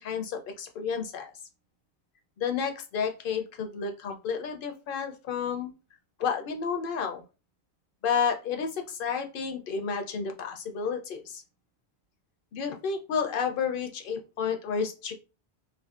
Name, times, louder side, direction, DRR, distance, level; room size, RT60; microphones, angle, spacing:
voice 1, 0.0-1.3 2.4-5.7 6.2-7.2 8.0-11.4 12.5-15.1, left 6 dB, 65° left, 5 dB, 0.7 m, -31 dB
2.5 x 2.3 x 2.4 m, 0.31 s
omnidirectional pair, 1.1 m